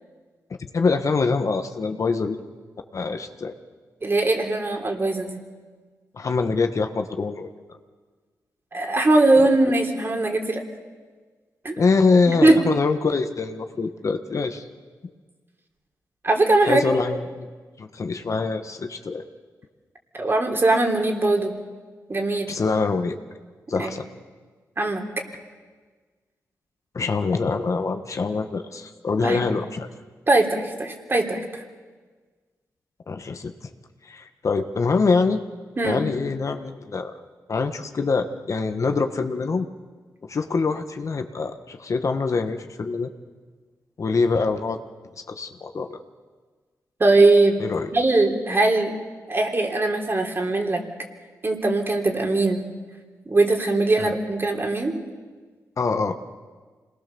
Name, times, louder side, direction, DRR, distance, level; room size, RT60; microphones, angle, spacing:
voice 1, 0.7-2.4 2.9-3.5 6.1-7.5 11.8-14.7 16.7-17.5 17.8-19.2 22.5-23.2 23.7-24.0 26.9-29.9 33.1-33.5 34.0-35.4 35.8-37.1 37.5-39.7 40.3-43.1 44.0-44.8 45.3-46.0 47.6-47.9 54.0-54.1 55.8-56.1, left 4 dB, 55° left, 7 dB, 1.5 m, -24 dB
voice 2, 4.0-5.4 8.7-10.6 11.6-11.8 12.3-12.6 16.2-16.8 20.1-21.5 22.1-22.5 23.8-23.9 24.8-25.0 29.2-29.4 30.3-31.4 35.8-36.0 47.0-47.6 47.9-49.0 49.3-50.8 51.4-52.6 53.3-54.9, right 2 dB, 35° right, 2 dB, 3.5 m, -20 dB
26.5 x 20.0 x 7.1 m, 1.4 s
cardioid pair, 75°, 6 cm